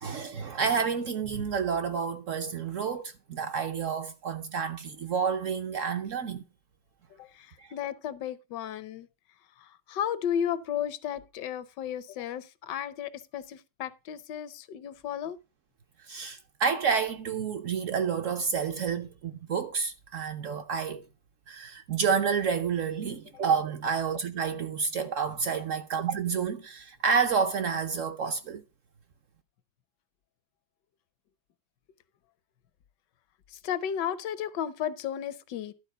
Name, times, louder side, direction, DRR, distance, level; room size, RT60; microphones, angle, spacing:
voice 1, 0.0-6.4 7.6-7.7 16.0-21.0 21.5-28.6, right 6 dB, 60° right, 0.9 m, -29 dB
voice 2, 7.1-9.1 9.6-15.4 33.5-35.7, left 9 dB, 80° left, 1.4 m, -34 dB
11.5 x 4.4 x 6.6 m
omnidirectional pair, 1.9 m